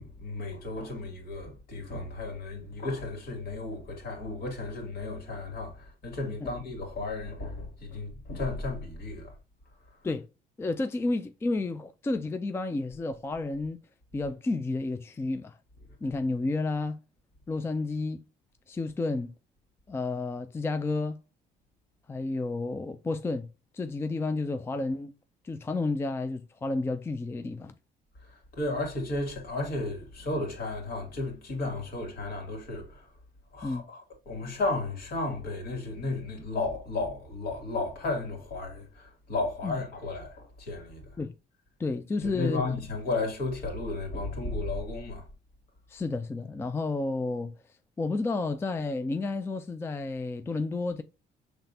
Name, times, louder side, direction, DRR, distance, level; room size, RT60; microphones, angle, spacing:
voice 1, 0.0-9.3 28.2-33.1 33.5-41.2 42.2-45.3, left 2 dB, 65° left, 2.5 m, -34 dB
voice 2, 10.6-13.8 14.1-15.6 16.0-17.0 17.5-18.2 18.7-19.3 19.9-21.2 22.1-23.5 23.7-25.1 25.4-27.7 33.6-33.8 39.6-39.7 41.2-41.3 41.8-42.6 45.9-47.5 48.0-51.0, left 3 dB, 15° left, 0.3 m, -31 dB
5.8 x 3.4 x 2.7 m
cardioid pair, 110°, 17 cm